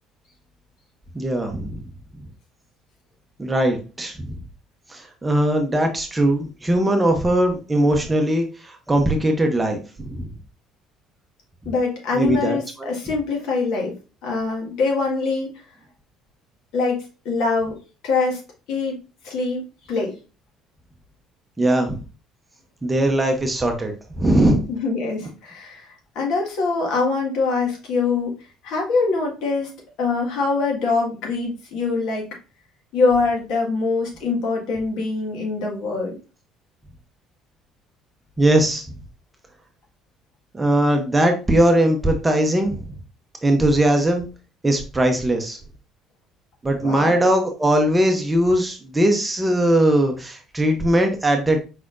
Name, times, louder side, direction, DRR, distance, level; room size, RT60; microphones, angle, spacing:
voice 1, 1.1-1.8 3.4-4.3 4.9-10.3 12.1-12.9 21.6-22.0 22.8-24.6 38.4-38.9 40.5-42.9 43.4-44.2 44.6-45.6 46.6-51.6, right 1 dB, 10° right, 4 dB, 0.7 m, -20 dB
voice 2, 11.7-13.9 14.2-15.5 16.7-18.4 18.7-18.9 19.2-20.1 24.7-28.4 28.6-29.7 30.0-32.3 32.9-36.2 46.8-47.1, left 4 dB, 70° left, 0 dB, 1.7 m, -24 dB
4.7 x 4.1 x 2.5 m, 0.32 s
cardioid pair, 155°, 0 cm